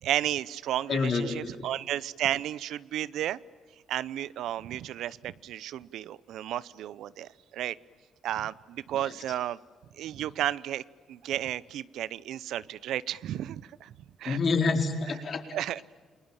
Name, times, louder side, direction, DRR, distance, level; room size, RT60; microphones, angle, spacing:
voice 1, 0.0-3.4 3.9-7.8 8.2-9.6 9.9-10.8 11.1-13.9 14.2-14.4 15.5-15.8, right 12 dB, 80° right, 20 dB, 0.7 m, -33 dB
voice 2, 0.9-1.5 14.2-15.4, left 4 dB, 50° left, 5 dB, 4.4 m, -27 dB
29.0 x 21.0 x 9.0 m, 1.5 s
cardioid pair, 90°, 0 cm